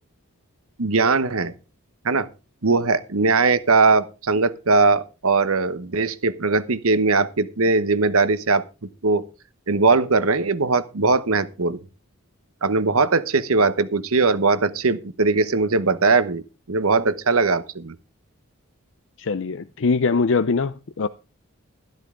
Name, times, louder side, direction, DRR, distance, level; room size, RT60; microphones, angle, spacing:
voice 1, 0.8-1.5 2.0-2.3 2.6-8.6 9.0-9.2 9.7-11.8 12.6-17.9, right 3 dB, 75° right, 1.0 m, -20 dB
voice 2, 19.2-21.1, left 4 dB, 60° left, 0.5 m, -22 dB
12.5 x 12.0 x 3.7 m
head